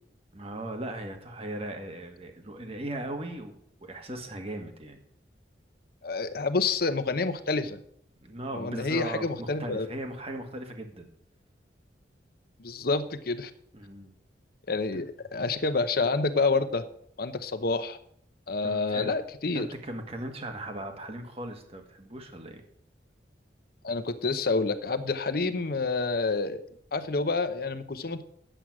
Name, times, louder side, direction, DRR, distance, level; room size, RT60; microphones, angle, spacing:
voice 1, 0.3-3.5 3.8-5.0 8.2-11.1 13.7-14.1 14.9-15.0 18.6-19.1 19.5-22.6, right 1 dB, 35° right, 5 dB, 1.5 m, -38 dB
voice 2, 6.0-7.8 8.5-9.9 12.6-13.5 14.7-15.1 15.3-16.8 17.2-18.0 18.5-19.7 23.8-26.6 26.9-28.2, left 3 dB, 55° left, 10 dB, 0.8 m, -28 dB
10.0 x 7.9 x 6.0 m, 0.68 s
head